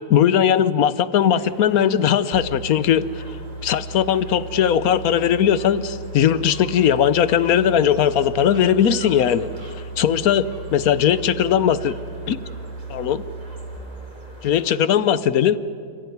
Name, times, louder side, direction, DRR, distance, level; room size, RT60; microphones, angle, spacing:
voice 1, 0.1-3.3 3.6-9.5 10.0-12.0 12.3-12.4 12.9-13.2 14.4-15.6, left 9 dB, 65° left, 15 dB, 1.1 m, -19 dB
sound 1, 1.1-14.8, right 1 dB, 25° right, 3.2 m, -45 dB
sound 2, 2.3-13.8, right 2 dB, 75° right, 8.0 m, -36 dB
29.5 x 15.5 x 9.4 m, 2.3 s
omnidirectional pair, 1.8 m